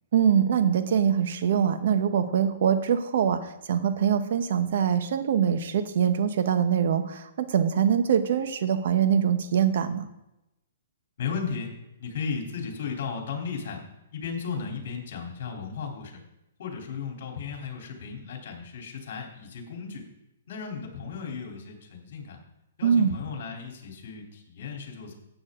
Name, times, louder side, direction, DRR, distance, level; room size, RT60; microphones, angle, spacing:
voice 1, 0.1-10.0 22.8-23.1, right 8 dB, 60° right, 9 dB, 1.3 m, -23 dB
voice 2, 11.2-11.7 12.0-13.8 14.1-16.2 16.6-20.0 20.5-22.4 22.8-25.2, left 5 dB, 55° left, 1 dB, 3.7 m, -35 dB
14.0 x 8.8 x 3.9 m, 0.89 s
hypercardioid pair, 155°, 0 cm